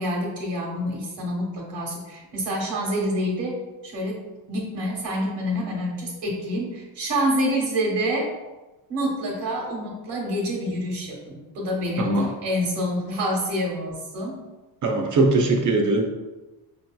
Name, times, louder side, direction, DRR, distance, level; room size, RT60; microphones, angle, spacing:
voice 1, 0.0-3.5 3.8-4.2 4.5-8.3 8.9-14.4 15.5-15.8, equal, 75° right, -1 dB, 1.2 m, -27 dB
voice 2, 14.8-16.1, right 2 dB, 45° right, 2 dB, 0.6 m, -20 dB
5.1 x 2.7 x 2.2 m, 1.1 s
cardioid pair, 145°, 41 cm